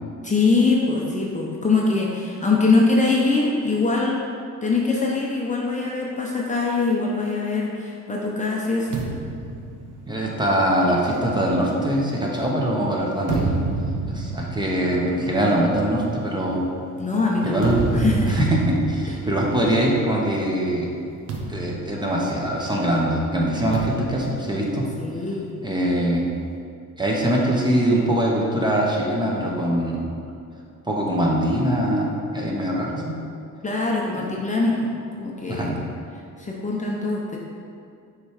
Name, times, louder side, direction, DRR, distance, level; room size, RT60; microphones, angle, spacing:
voice 1, 0.2-4.2 4.6-9.0 17.0-18.4 25.0-25.5 33.6-35.8 36.4-37.4, left 3 dB, 25° left, -3 dB, 0.8 m, -23 dB
sound 1, 8.9-12.5 13.0-20.5 20.7-20.9 21.3-22.9 23.7-25.5, right 3 dB, 80° right, 0.8 m, -30 dB
voice 2, 10.1-13.6 14.1-16.7 17.4-17.8 18.3-20.9 21.5-24.9 25.6-26.3 27.0-30.1 30.9-33.2 34.1-34.2 35.5-35.8, right 1 dB, 15° right, -3 dB, 1.1 m, -22 dB
6.2 x 3.3 x 4.9 m, 2.4 s
cardioid pair, 90°, 30 cm